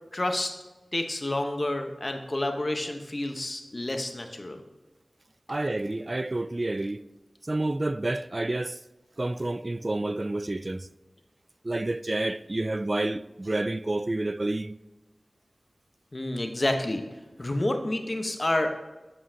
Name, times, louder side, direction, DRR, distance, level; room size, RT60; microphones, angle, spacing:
voice 1, 0.1-0.5 0.9-4.6 16.1-17.0 17.4-18.7, left 1 dB, 45° left, 1.1 m, -29 dB
voice 2, 5.5-7.0 7.4-8.8 9.2-10.9 11.6-14.8, right 2 dB, 45° right, 0.3 m, -29 dB
12.5 x 5.5 x 2.8 m
wide cardioid pair, 40°, 0 cm